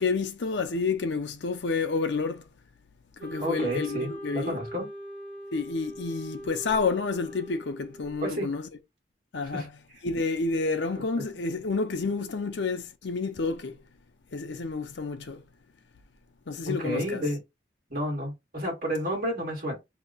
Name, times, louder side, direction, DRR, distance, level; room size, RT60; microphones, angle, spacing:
voice 1, 0.0-2.4 3.2-4.6 5.5-8.7 9.3-9.6 10.0-13.8 14.3-15.4 16.5-17.2, left 4 dB, 70° left, 0.6 m, -29 dB
Wind instrument woodwind instrument, 3.2-8.3, equal, 80° right, 1.2 m, -42 dB
voice 2, 3.4-4.9 8.2-8.5 9.5-9.7 11.2-11.3 16.7-17.4 17.9-19.8, equal, 50° right, 1.5 m, -31 dB
2.9 x 2.2 x 3.9 m
head